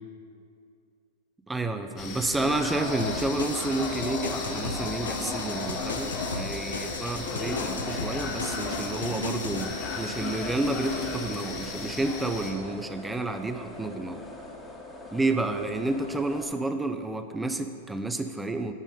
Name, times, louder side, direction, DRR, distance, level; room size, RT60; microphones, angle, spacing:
voice 1, 1.5-14.2 15.1-18.7, right 2 dB, 10° right, 8 dB, 0.5 m, -30 dB
sound 1, 2.0-12.5, left 3 dB, 35° left, 1.4 m, -34 dB
sound 2, 3.0-9.6, left 3 dB, 85° left, 0.7 m, -36 dB
sound 3, 3.7-16.5, left 2 dB, 10° left, 1.2 m, -43 dB
9.0 x 5.2 x 5.1 m, 2.4 s
hypercardioid pair, 105°, 0 cm